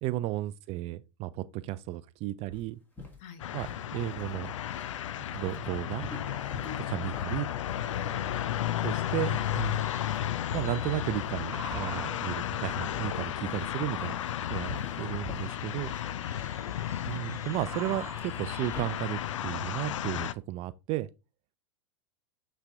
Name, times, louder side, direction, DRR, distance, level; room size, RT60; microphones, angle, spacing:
voice 1, 0.0-2.8 3.5-3.7 3.9-4.5 5.3-6.1 6.9-7.5 7.8-7.9 8.8-9.8 10.5-14.2 14.5-14.7 15.0-15.9 17.1-21.1, right 16 dB, 40° right, 0.4 m, -34 dB
sound 1, 2.5-18.8, left 1 dB, 10° left, 2.1 m, -47 dB
sound 2, 3.4-20.3, left 11 dB, 70° left, 0.5 m, -33 dB
voice 2, 6.6-7.1 7.8-8.2 13.4-13.7 16.1-16.4, left 7 dB, 45° left, 1.4 m, -47 dB
sound 3, 9.1-19.2, right 4 dB, 15° right, 0.9 m, -49 dB
8.0 x 3.4 x 3.6 m
hypercardioid pair, 95°, 16 cm